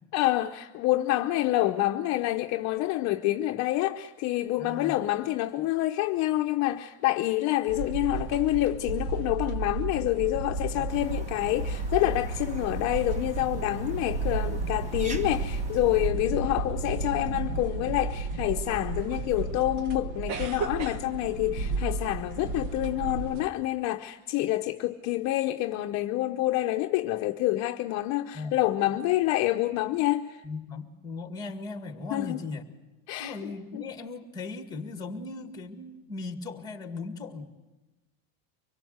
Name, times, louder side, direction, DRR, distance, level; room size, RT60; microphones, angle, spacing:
voice 1, 0.1-30.4 32.1-32.4 33.1-33.9, left 16 dB, 45° left, 0.8 m, -27 dB
voice 2, 4.6-5.0 10.7-10.9 28.3-28.6 30.4-32.7 33.2-37.5, left 3 dB, 10° left, 1.8 m, -38 dB
sound 1, 7.7-23.5, right 3 dB, 65° right, 1.7 m, -33 dB
sound 2, 10.9-16.1, equal, 15° right, 1.2 m, -44 dB
24.5 x 22.0 x 8.0 m
cardioid pair, 175°, 40 cm